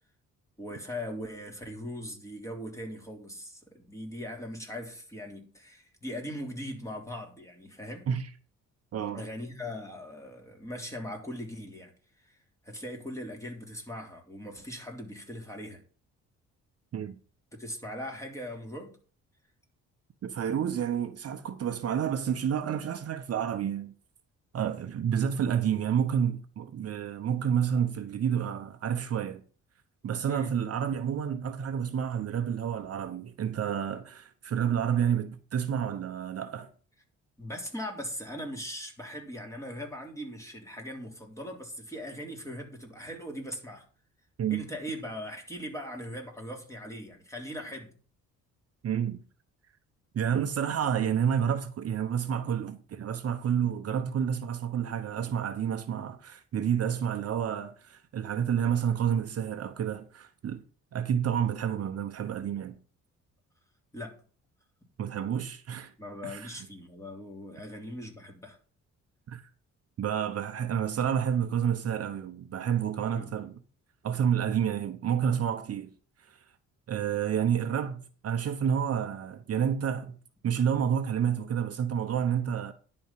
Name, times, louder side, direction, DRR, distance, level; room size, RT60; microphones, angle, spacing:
voice 1, 0.6-8.1 9.1-11.9 12.2-12.4 12.6-15.8 17.5-19.0 26.9-27.1 30.3-30.5 37.4-43.8 44.5-47.9 63.9-64.2 66.0-68.6 73.1-73.3, equal, 10° left, 3.3 m, -40 dB
voice 2, 8.9-9.2 16.9-17.2 20.2-23.9 24.5-29.4 30.0-36.7 44.4-44.6 48.8-49.2 50.1-60.6 60.9-62.8 65.0-65.9 66.2-66.6 69.3-69.4 70.0-73.5 74.0-75.9 76.2-76.4 76.9-80.1 80.4-82.7, right 8 dB, 55° right, 0.9 m, -29 dB
10.5 x 4.4 x 7.4 m
cardioid pair, 90°, 30 cm